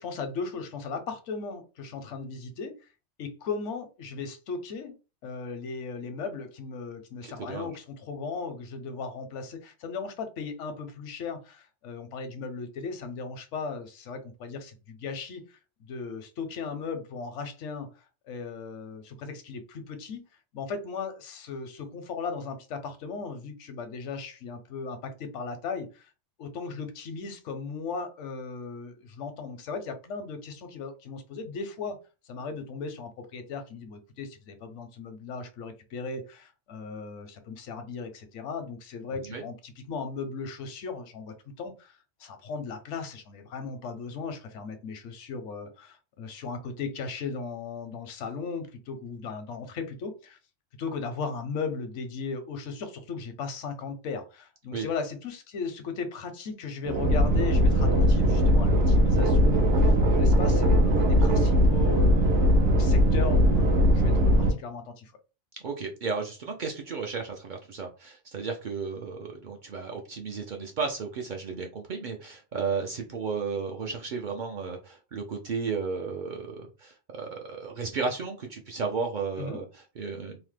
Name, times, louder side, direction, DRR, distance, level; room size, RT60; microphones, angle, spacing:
voice 1, 0.0-2.8 3.2-5.0 5.2-20.2 20.5-26.1 26.4-32.0 32.3-50.4 50.8-65.1 79.4-79.6, left 4 dB, 85° left, 1.0 m, -37 dB
voice 2, 7.2-7.7 39.2-39.4 54.7-54.9 65.6-80.4, right 5 dB, 60° right, 0.5 m, -34 dB
sound 1, 56.8-64.5, equal, 75° right, 1.0 m, -20 dB
2.8 x 2.0 x 3.1 m
omnidirectional pair, 1.2 m